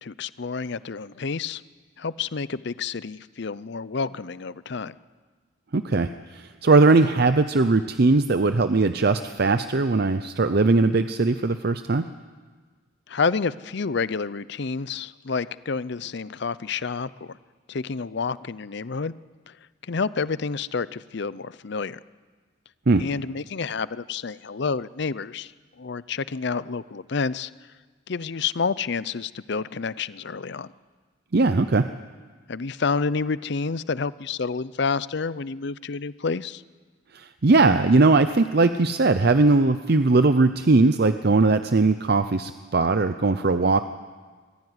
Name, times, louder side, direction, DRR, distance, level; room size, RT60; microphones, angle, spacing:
voice 1, 0.0-1.6 2.0-5.0 13.1-17.4 17.7-19.1 19.5-19.6 19.8-22.0 23.0-25.5 25.8-27.5 28.1-30.7 32.5-36.6, left 4 dB, 55° left, 17 dB, 0.6 m, -29 dB
voice 2, 5.7-12.1 22.9-23.0 31.3-31.9 37.1-43.8, right 3 dB, 50° right, 10 dB, 0.6 m, -20 dB
22.0 x 15.5 x 9.7 m, 1.5 s
head